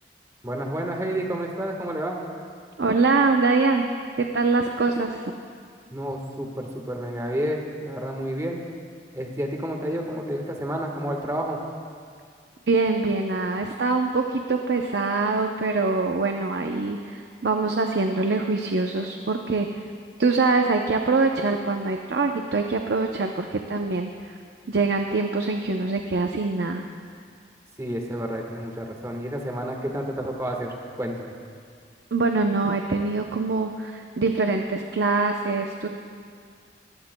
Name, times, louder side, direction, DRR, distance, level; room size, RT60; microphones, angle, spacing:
voice 1, 0.4-2.2 5.9-8.6 9.1-11.6 27.8-30.7 31.0-31.3, right 1 dB, 15° right, 1 dB, 1.4 m, -30 dB
voice 2, 2.8-3.9 4.2-5.2 12.7-19.7 20.2-24.1 24.7-26.8 32.1-35.9, right 3 dB, 70° right, 4 dB, 0.6 m, -24 dB
21.5 x 15.5 x 2.2 m, 2.1 s
head